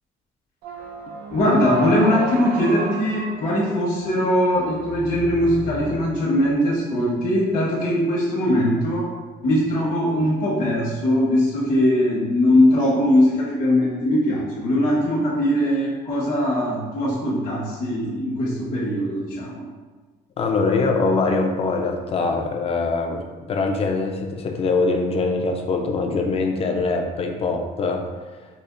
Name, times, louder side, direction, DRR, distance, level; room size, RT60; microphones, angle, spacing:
sound 1, 0.6-6.6, right 4 dB, 65° right, 0.4 m, -33 dB
voice 1, 1.3-9.1 9.4-19.6, left 1 dB, 50° left, -7 dB, 1.0 m, -21 dB
voice 2, 20.4-23.2 23.5-28.1, left 3 dB, 35° left, 3 dB, 0.5 m, -23 dB
4.9 x 2.4 x 2.5 m, 1.4 s
cardioid pair, 110°, 17 cm